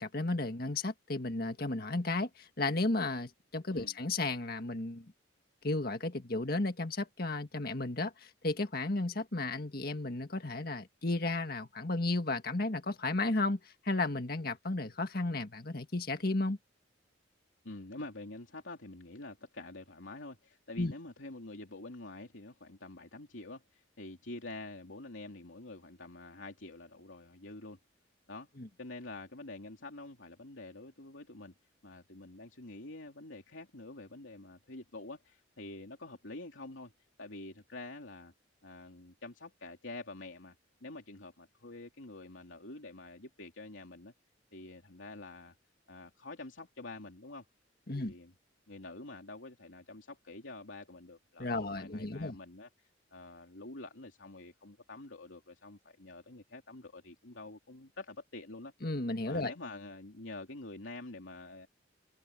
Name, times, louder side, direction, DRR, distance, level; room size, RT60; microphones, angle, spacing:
voice 1, 0.0-5.1 5.6-16.6 20.8-20.9 28.6-28.7 47.9-48.1 51.4-52.4 58.8-59.5, left 2 dB, 50° left, 1.8 m, -33 dB
voice 2, 17.6-27.8 28.3-28.5 28.8-31.5 31.8-36.9 37.2-38.3 38.6-40.5 40.8-44.1 44.5-45.5 45.9-47.4 47.9-48.3 48.7-58.7 59.3-61.7, left 2 dB, 80° left, 3.0 m, -47 dB
head